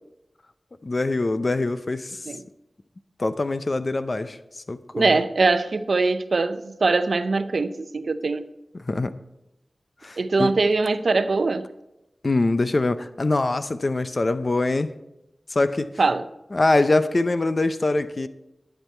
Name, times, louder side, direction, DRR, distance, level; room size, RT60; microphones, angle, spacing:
voice 1, 0.8-2.2 3.2-4.4 4.7-5.1 8.9-9.1 10.0-10.5 12.2-14.9 15.5-15.9 16.5-18.3, left 2 dB, 50° left, 0.6 m, -23 dB
voice 2, 4.9-8.5 10.2-11.7 16.0-16.2, right 3 dB, 75° right, 0.6 m, -22 dB
11.0 x 8.9 x 4.4 m
cardioid pair, 50°, 0 cm